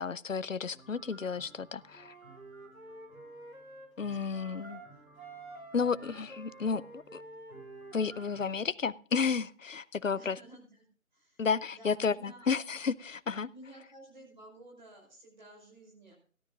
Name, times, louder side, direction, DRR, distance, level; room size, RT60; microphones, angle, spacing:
voice 1, 0.0-2.1 4.0-4.8 5.7-7.2 7.9-10.4 11.4-13.5, left 5 dB, 65° left, 18 dB, 0.7 m, -32 dB
sound 1, 0.6-8.6, right 3 dB, 5° right, 3.8 m, -57 dB
Wind instrument woodwind instrument, 1.9-4.9 5.2-8.3, right 2 dB, 75° right, 3.4 m, -50 dB
voice 2, 10.1-10.9 11.1-11.4 11.7-12.5 13.4-16.1, right 1 dB, 35° right, -1 dB, 5.3 m, -53 dB
17.0 x 12.5 x 2.5 m, 0.41 s
figure-of-eight pair, 170°, 42 cm